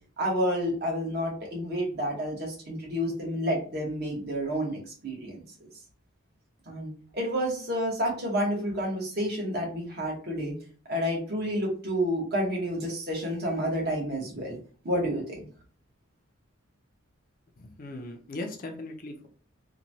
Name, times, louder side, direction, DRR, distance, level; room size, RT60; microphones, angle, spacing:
voice 1, 0.2-5.4 6.7-10.5 10.9-14.6 14.8-15.5, equal, 50° right, -2 dB, 1.0 m, -30 dB
voice 2, 17.6-19.3, left 2 dB, 40° left, 4 dB, 0.4 m, -38 dB
2.9 x 2.2 x 2.7 m, 0.42 s
head